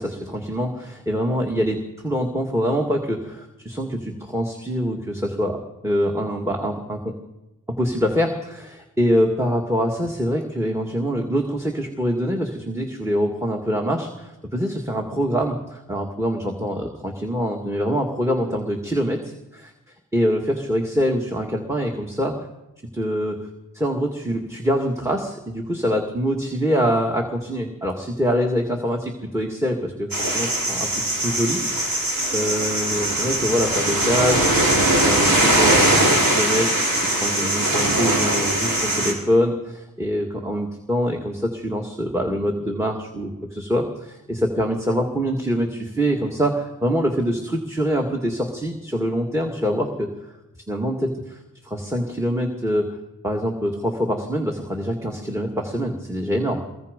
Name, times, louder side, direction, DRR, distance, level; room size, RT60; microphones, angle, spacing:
voice 1, 0.0-7.1 7.8-22.4 22.9-29.9 30.3-30.9 31.2-36.7 37.2-50.1 50.7-53.0 53.2-56.6, equal, 10° right, 3 dB, 2.1 m, -24 dB
sound 1, 30.1-39.1, right 1 dB, 80° right, 5.2 m, -20 dB
24.0 x 21.5 x 5.3 m, 0.99 s
wide cardioid pair, 95°, 34 cm